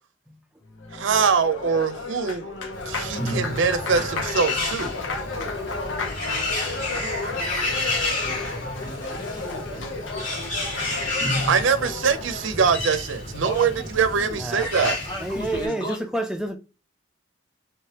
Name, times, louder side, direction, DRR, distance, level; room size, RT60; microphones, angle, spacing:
Applause, 0.7-12.5, left 3 dB, 85° left, 0.8 m, -33 dB
voice 1, 0.9-2.4 2.9-4.9 11.5-15.0, right 6 dB, 80° right, 0.5 m, -23 dB
Bird, 2.7-15.7, left 2 dB, 65° left, 2.0 m, -30 dB
voice 2, 5.3-6.3 6.9-10.0 13.4-14.4 14.7-16.0, equal, 25° left, 1.1 m, -38 dB
voice 3, 14.4-16.6, right 1 dB, 5° right, 0.5 m, -30 dB
3.3 x 3.2 x 2.9 m
head